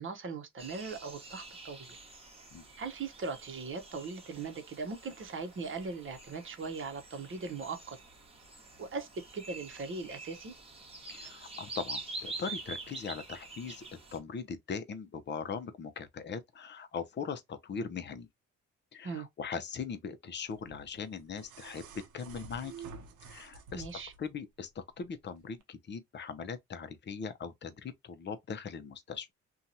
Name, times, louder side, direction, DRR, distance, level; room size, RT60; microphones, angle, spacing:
voice 1, 0.0-1.9 2.8-8.0 8.8-9.1 9.3-10.5 19.0-19.3 23.7-24.1, right 4 dB, 40° right, 0.8 m, -39 dB
sound 1, 0.6-14.2, right 3 dB, 20° right, 1.0 m, -46 dB
voice 2, 11.1-13.9 14.1-18.3 18.9-22.7 23.2-23.9 24.2-29.3, left 6 dB, 35° left, 0.6 m, -40 dB
sound 2, 20.5-24.3 25.5-25.6, right 4 dB, 75° right, 0.6 m, -49 dB
2.8 x 2.3 x 2.6 m
cardioid pair, 90°, 30 cm